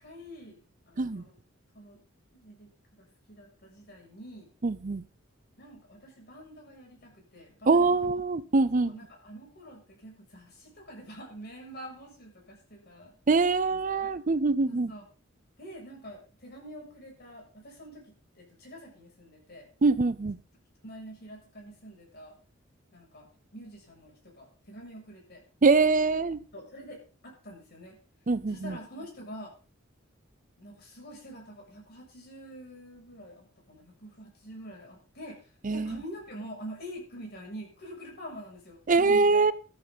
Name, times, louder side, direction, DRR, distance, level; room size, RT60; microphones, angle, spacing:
voice 1, 0.0-1.4 1.7-2.0 2.3-4.5 5.6-8.2 8.7-13.1 14.0-14.1 14.7-15.0 15.6-19.7 20.8-22.3 22.9-25.4 26.5-28.0 28.5-29.5 30.6-39.5, equal, 55° left, 7.5 m, -46 dB
voice 2, 4.6-5.0 7.7-9.0 13.3-14.9 19.8-20.4 25.6-26.4 28.3-28.8 35.6-36.0 38.9-39.5, right 3 dB, 40° right, 0.6 m, -24 dB
14.0 x 12.0 x 4.1 m
head